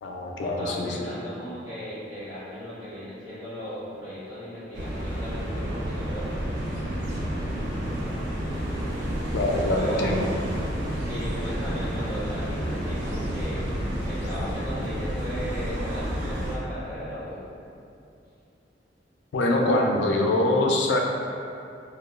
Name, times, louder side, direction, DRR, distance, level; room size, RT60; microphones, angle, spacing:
voice 1, 0.0-1.1 9.3-10.3 19.3-21.0, left 1 dB, 70° left, 0 dB, 0.3 m, -24 dB
voice 2, 0.6-6.3 9.7-10.2 11.1-13.8 14.0-17.4, equal, 15° right, -16 dB, 1.0 m, -37 dB
sound 1, 4.7-16.6, equal, 70° right, 0.5 m, -30 dB
2.8 x 2.1 x 2.3 m, 2.6 s
head